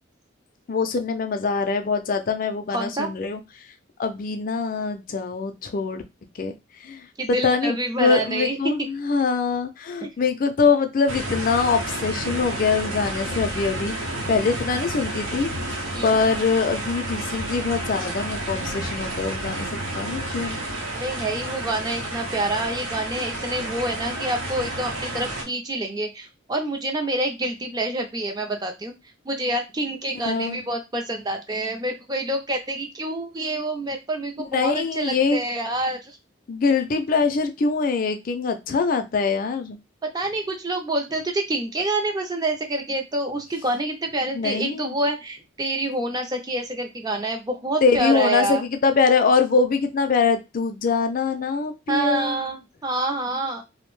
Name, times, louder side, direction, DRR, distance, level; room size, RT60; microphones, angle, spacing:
voice 1, 0.7-3.4 4.0-6.0 6.4-6.5 6.8-15.8 16.0-20.6 30.2-30.6 34.4-35.4 36.5-39.8 44.3-44.9 47.8-52.4, left 4 dB, 45° left, 7 dB, 0.4 m, -23 dB
voice 2, 2.7-3.1 7.2-8.7 10.0-10.1 15.9-16.1 20.9-28.9 29.3-36.2 40.0-48.6 51.9-53.6, right 1 dB, 20° right, 4 dB, 0.4 m, -27 dB
sound 1, 11.1-25.4, right 1 dB, 85° right, 0.8 m, -30 dB
2.5 x 2.1 x 3.0 m, 0.24 s
head